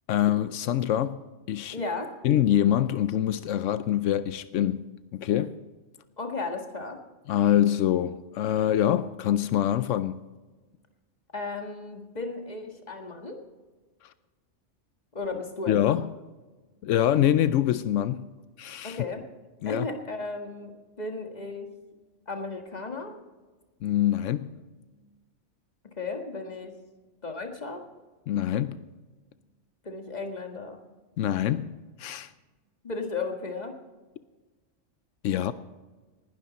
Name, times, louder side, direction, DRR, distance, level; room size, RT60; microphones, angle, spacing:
voice 1, 0.1-1.2 1.5-1.8 2.2-5.6 7.3-10.2 14.0-14.1 15.7-16.1 16.8-18.3 18.6-19.0 19.6-19.9 23.8-24.6 28.3-28.9 31.2-32.3 35.2-35.5, left 11 dB, 85° left, 1.0 m, -25 dB
voice 2, 1.7-2.1 6.2-7.0 11.3-13.4 15.1-16.0 18.8-19.2 19.6-21.7 22.3-23.2 26.0-26.7 27.2-27.8 29.8-30.8 32.8-33.8, left 3 dB, 35° left, 1.8 m, -35 dB
19.5 x 12.0 x 4.1 m
omnidirectional pair, 1.3 m